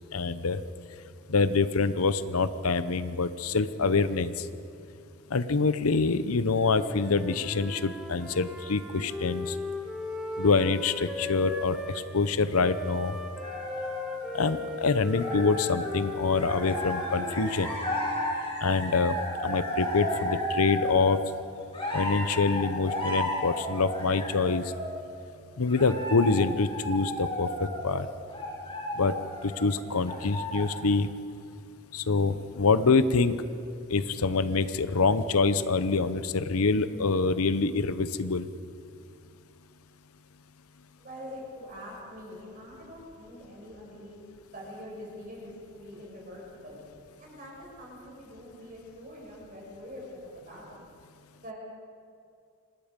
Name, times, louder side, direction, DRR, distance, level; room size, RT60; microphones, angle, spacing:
voice 1, 0.1-0.6 1.3-4.3 5.3-9.5 10.4-11.8 12.1-13.2 14.3-17.7 18.6-19.2 19.4-21.2 21.9-24.6 25.6-28.1 29.0-29.1 29.4-31.1 31.9-33.4 33.9-38.5, left 4 dB, 85° left, 13 dB, 0.8 m, -25 dB
Wind instrument woodwind instrument, 6.6-12.0 12.5-18.4, left 2 dB, ahead, 1.7 m, -38 dB
sound 1, 13.4-14.8 15.1-16.1 16.4-21.1 21.7-25.0 25.7-29.8 30.0-30.8, equal, 25° left, 5.4 m, -33 dB
voice 2, 41.0-44.2 44.5-46.9 47.2-50.8 51.4-51.5, equal, 40° right, -3 dB, 6.2 m, -44 dB
26.0 x 19.5 x 5.2 m, 2.4 s
head